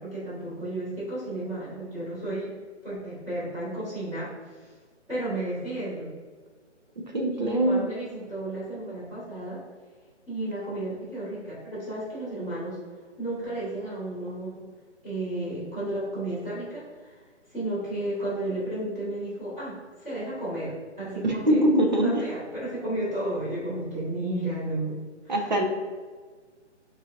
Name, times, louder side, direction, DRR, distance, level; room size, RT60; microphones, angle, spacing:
voice 1, 0.0-2.5 2.8-4.7 5.1-6.1 7.3-9.6 10.3-12.8 13.2-14.6 15.0-17.2 17.5-21.6 22.0-25.3, right 1 dB, 5° right, -16 dB, 1.4 m, -33 dB
voice 2, 7.1-7.9 21.2-22.2 25.3-25.6, right 1 dB, 40° right, 2 dB, 0.7 m, -22 dB
6.3 x 3.3 x 2.5 m, 1.5 s
hypercardioid pair, 175°, 36 cm